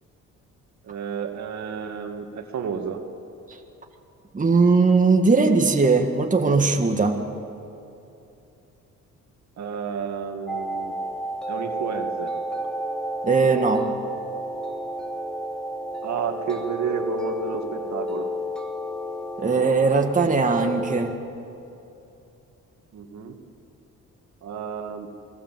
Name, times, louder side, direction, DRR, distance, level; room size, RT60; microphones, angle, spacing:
voice 1, 0.9-3.0 9.6-10.9 11.5-12.3 16.0-18.3 22.9-23.4 24.4-25.1, right 6 dB, 65° right, 4 dB, 2.3 m, -31 dB
voice 2, 4.3-7.2 13.2-13.9 19.4-21.1, right 4 dB, 25° right, 3 dB, 2.0 m, -19 dB
sound 1, 10.5-21.2, right 1 dB, ahead, 2.4 m, -31 dB
28.0 x 19.5 x 7.7 m, 2.8 s
cardioid pair, 90°, 30 cm